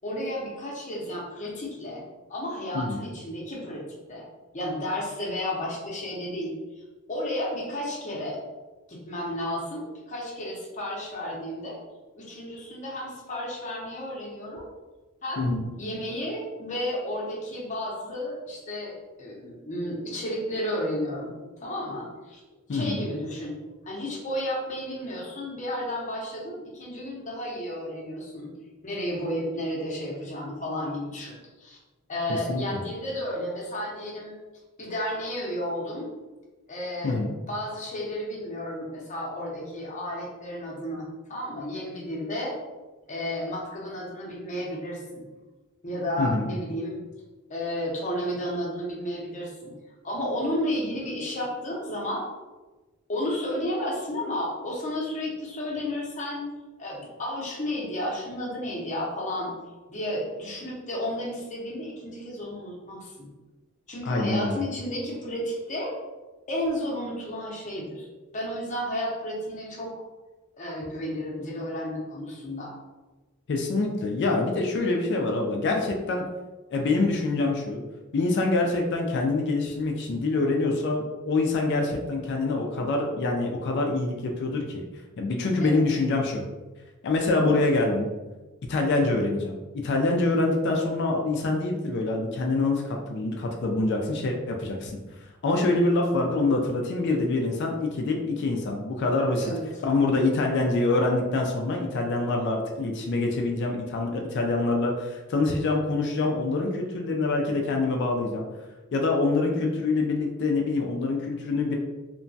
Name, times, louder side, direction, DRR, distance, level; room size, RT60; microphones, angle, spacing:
voice 1, 0.0-2.0 2.3-4.2 4.5-6.5 7.1-8.4 8.9-11.8 12.1-14.7 15.2-15.5 15.8-21.3 21.6-22.4 22.7-23.6 23.8-28.5 28.8-31.8 32.1-34.4 34.8-36.1 36.7-37.2 37.5-42.6 43.1-45.3 45.8-47.0 47.5-49.8 50.0-52.2 53.1-56.4 56.8-59.6 59.9-63.3 63.9-65.9 66.5-68.1 68.3-69.9 70.6-72.7 85.6-85.8 99.4-99.6, left 1 dB, 35° left, -3 dB, 0.7 m, -32 dB
voice 2, 15.4-15.7 22.7-23.0 32.3-32.6 37.0-37.3 46.2-46.5 64.1-64.6 73.5-76.2 76.7-77.8 78.1-84.8 85.2-86.4 87.0-88.1 88.7-89.6 89.8-94.9 95.4-99.5 99.8-108.5 108.9-111.7, left 2 dB, 55° left, 1 dB, 0.4 m, -25 dB
2.9 x 2.2 x 2.6 m, 1.2 s
head